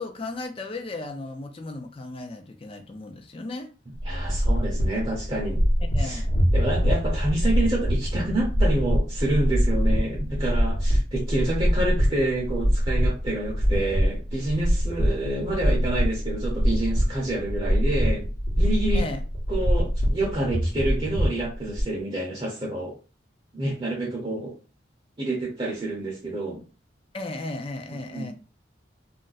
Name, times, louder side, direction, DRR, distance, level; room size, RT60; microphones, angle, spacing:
voice 1, 0.0-3.7 5.9-6.3 18.9-19.2 27.1-28.3, left 2 dB, 30° left, 0.4 m, -35 dB
sound 1, 4.0-21.8, equal, 65° left, 1.0 m, -24 dB
voice 2, 4.0-5.6 6.0-6.2 6.5-18.3 18.6-19.1 19.5-23.0 23.5-24.5 25.2-26.6 27.9-28.3, right 1 dB, 25° right, 0.7 m, -28 dB
2.5 x 2.1 x 3.9 m
head